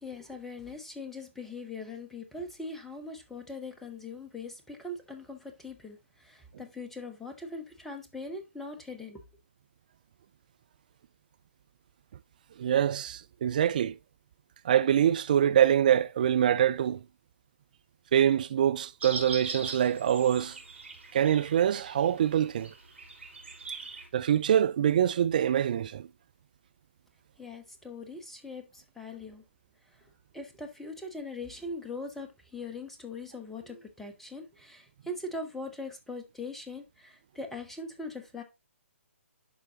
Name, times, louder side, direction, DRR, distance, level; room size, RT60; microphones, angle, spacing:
voice 1, 0.0-9.2 27.4-29.4 30.3-38.4, left 2 dB, 5° left, 0.9 m, -41 dB
voice 2, 12.6-14.0 14.6-17.0 18.1-20.6 21.1-22.7 24.1-26.1, right 10 dB, 35° right, 0.4 m, -25 dB
sound 1, 19.0-24.1, right 4 dB, 60° right, 3.3 m, -41 dB
11.0 x 4.0 x 2.8 m
figure-of-eight pair, 135°, 7 cm